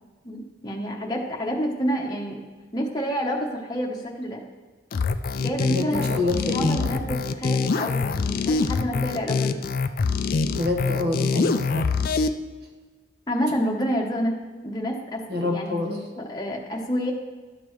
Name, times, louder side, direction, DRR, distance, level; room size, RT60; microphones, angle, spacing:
voice 1, 0.2-2.4 2.7-4.4 5.4-6.1 6.4-9.6 13.3-14.3 14.6-15.8 16.2-17.1, equal, 20° left, -1 dB, 0.9 m, -28 dB
sound 1, 4.9-12.3, left 4 dB, 50° left, 0.3 m, -24 dB
voice 2, 5.7-7.0 10.5-12.0 15.3-16.0, left 2 dB, 60° right, 1 dB, 1.4 m, -27 dB
12.0 x 6.8 x 3.1 m, 1.3 s
head